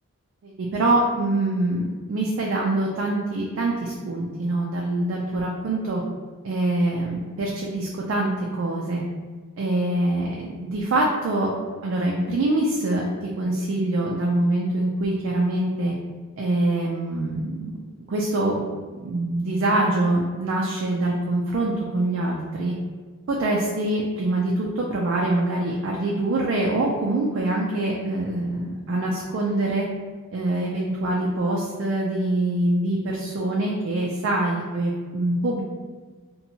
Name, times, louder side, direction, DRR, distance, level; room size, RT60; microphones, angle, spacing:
voice 1, 0.4-6.0 6.4-9.0 9.6-11.5 11.8-15.9 16.4-17.8 18.1-18.7 19.0-22.7 23.3-29.9 30.3-35.6, right 2 dB, 55° right, -2 dB, 0.3 m, -24 dB
2.7 x 2.2 x 2.8 m, 1.5 s
head